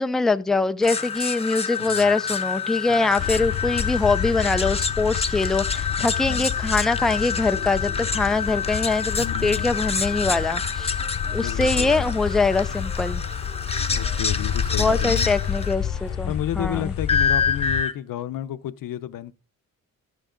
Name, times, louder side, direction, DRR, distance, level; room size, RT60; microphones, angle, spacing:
voice 1, 0.0-11.0 11.3-13.2 14.8-16.9, left 3 dB, ahead, 0.4 m, -23 dB
sound 1, 0.8-15.7 17.1-17.9, left 5 dB, 20° left, 0.9 m, -27 dB
sound 2, 3.2-17.8, left 9 dB, 45° left, 0.7 m, -29 dB
voice 2, 6.0-6.5 9.2-9.8 11.4-12.2 13.9-15.3 16.2-19.3, left 11 dB, 90° left, 0.8 m, -32 dB
sound 3, 6.5-16.4, right 2 dB, 60° right, 5.6 m, -48 dB
12.5 x 6.3 x 3.8 m
wide cardioid pair, 135°, 32 cm